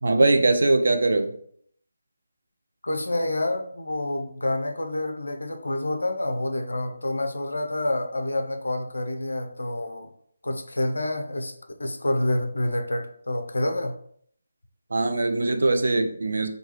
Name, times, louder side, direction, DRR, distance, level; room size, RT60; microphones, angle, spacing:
voice 1, 0.0-1.3 14.9-16.5, right 2 dB, 60° right, 6 dB, 0.4 m, -21 dB
voice 2, 2.8-10.1 10.4-11.5 11.8-14.0, left 1 dB, 70° left, 6 dB, 0.4 m, -28 dB
3.2 x 2.2 x 2.9 m, 0.63 s
figure-of-eight pair, 155°, 0 cm